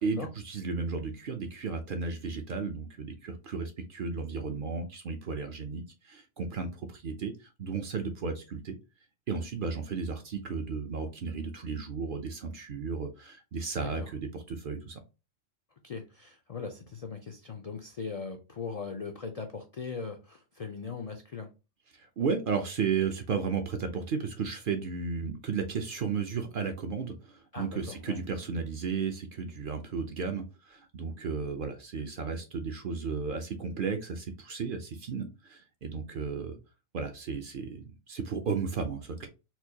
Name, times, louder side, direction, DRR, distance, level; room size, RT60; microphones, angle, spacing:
voice 1, 0.0-8.8 9.3-15.0 22.2-36.6 36.9-39.3, right 5 dB, 60° right, 5 dB, 0.6 m, -34 dB
voice 2, 13.8-14.1 15.8-21.5 27.5-28.2, left 5 dB, 70° left, 4 dB, 0.3 m, -39 dB
4.3 x 2.2 x 2.7 m, 0.30 s
omnidirectional pair, 1.3 m